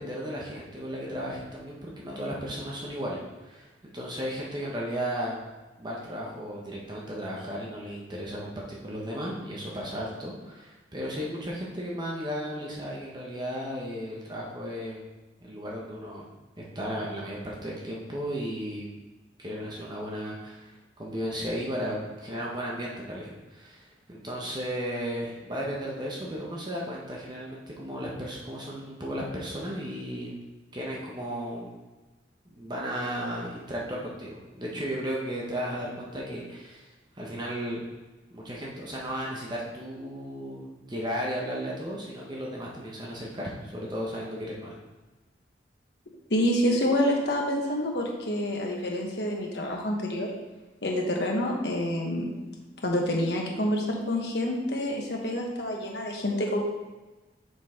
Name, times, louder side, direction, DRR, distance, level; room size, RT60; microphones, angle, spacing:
voice 1, 0.0-3.7 3.9-5.4 5.8-15.0 15.4-16.3 16.6-18.9 19.4-30.4 30.7-31.8 32.5-36.9 37.1-37.8 38.3-44.8, equal, 25° right, -3 dB, 1.0 m, -35 dB
voice 2, 46.3-50.3 50.8-52.3 52.8-56.6, left 1 dB, 65° left, 0 dB, 1.4 m, -27 dB
6.2 x 5.4 x 4.4 m, 1.2 s
head